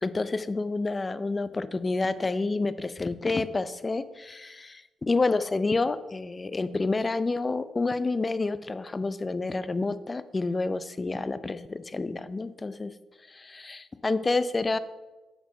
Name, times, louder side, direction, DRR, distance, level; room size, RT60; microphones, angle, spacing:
voice 1, 0.0-12.9 13.3-14.8, left 3 dB, 30° left, 14 dB, 0.5 m, -29 dB
7.4 x 4.7 x 5.6 m, 1.2 s
supercardioid pair, 50°, 0 cm